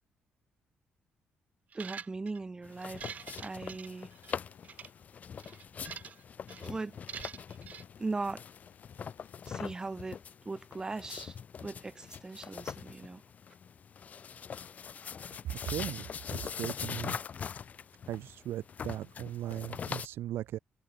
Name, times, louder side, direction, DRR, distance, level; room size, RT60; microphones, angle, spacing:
voice 1, 1.7-4.1 6.6-7.0 8.0-8.4 9.4-10.2 10.5-11.4 11.6-13.2, right 3 dB, 20° right, 2.2 m, -39 dB
sound 1, 1.7-2.4 2.8-4.3 4.6-4.9 5.4-6.2 6.5-6.7 7.1-7.8, right 7 dB, 45° right, 3.4 m, -45 dB
sound 2, 2.6-20.1, left 7 dB, 40° left, 1.5 m, -42 dB
sound 3, 2.8-9.6, left 12 dB, 85° left, 6.3 m, -64 dB
voice 2, 15.6-16.1 16.3-17.2 18.1-20.6, right 13 dB, 80° right, 0.4 m, -38 dB
cardioid pair, 145°, 4 cm